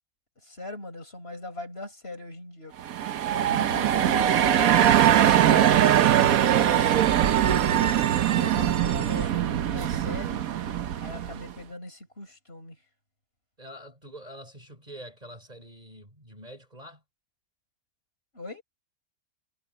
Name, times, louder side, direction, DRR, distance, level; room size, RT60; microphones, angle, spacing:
voice 1, 0.4-2.7 3.3-4.3 5.1-7.0 7.4-7.6 8.2-10.4 11.0-12.8 18.3-18.6, left 2 dB, 45° left, 6.8 m, -40 dB
sound 1, 2.8-11.5, right 10 dB, 80° right, 1.3 m, -22 dB
voice 2, 13.6-17.0, equal, 30° right, 4.6 m, -45 dB
omnidirectional pair, 1.5 m